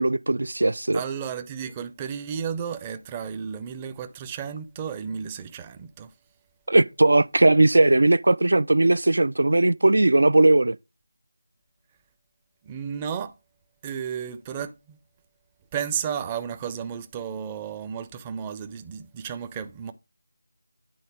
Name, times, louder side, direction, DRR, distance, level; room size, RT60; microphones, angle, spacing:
voice 1, 0.0-1.0 6.7-10.8, right 2 dB, 65° right, 0.4 m, -18 dB
voice 2, 0.9-6.1 12.6-13.3 13.8-15.0 15.7-19.9, right 7 dB, 15° right, 0.6 m, -33 dB
10.5 x 4.0 x 5.1 m
figure-of-eight pair, 165°, 0 cm